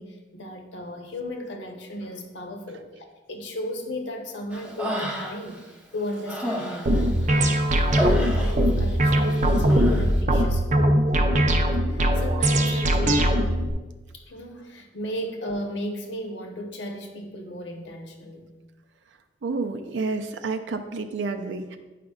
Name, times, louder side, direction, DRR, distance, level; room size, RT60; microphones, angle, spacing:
voice 1, 0.0-5.6 5.9-11.0 11.8-13.4 14.1-18.5, left 1 dB, 80° left, 3 dB, 1.0 m, -35 dB
Human voice, 4.5-5.6 6.0-8.9 9.2-10.1, equal, 10° right, 0.9 m, -30 dB
sound 1, 6.9-13.7, right 1 dB, 40° right, 0.5 m, -21 dB
voice 2, 19.4-21.8, right 3 dB, 90° right, 7 dB, 0.5 m, -29 dB
9.2 x 5.0 x 2.4 m, 1.2 s
head